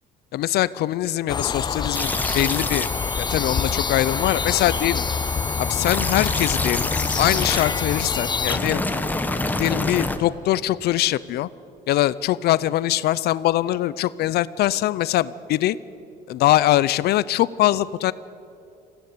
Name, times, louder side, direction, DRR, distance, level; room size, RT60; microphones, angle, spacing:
voice 1, 0.3-2.9 3.2-5.0 5.6-6.9 7.2-8.8 9.6-11.5 11.9-15.8 16.3-18.1, left 14 dB, 70° left, 18 dB, 0.6 m, -22 dB
sound 1, 1.3-8.6, left 6 dB, 25° left, 0.5 m, -27 dB
sound 2, 1.9-10.2, left 2 dB, 10° left, 1.4 m, -28 dB
20.5 x 16.0 x 9.6 m, 2.6 s
cardioid pair, 110°, 17 cm